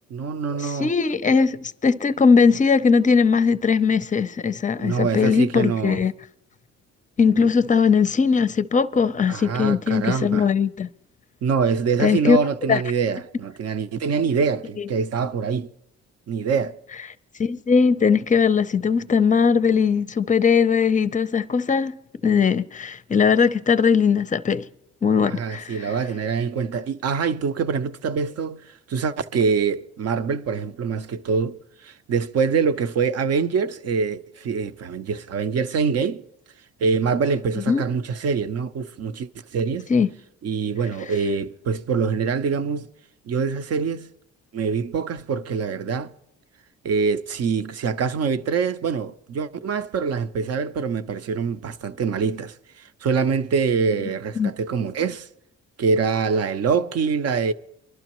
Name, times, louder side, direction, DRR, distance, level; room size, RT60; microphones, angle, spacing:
voice 1, 0.1-0.9 4.8-6.0 9.3-10.5 11.4-15.7 16.3-16.8 25.2-36.2 36.8-39.9 40.4-42.9 43.3-44.1 44.5-46.1 46.8-55.3 55.8-57.5, right 5 dB, 55° right, 0.7 m, -24 dB
voice 2, 0.6-6.1 7.2-10.9 12.0-12.4 12.7-12.8 17.4-21.9 22.2-24.7 25.0-25.9 37.7-37.8 39.9-40.1 54.4-54.5, left 5 dB, 25° left, 0.5 m, -19 dB
25.0 x 12.0 x 3.0 m
cardioid pair, 90°, 30 cm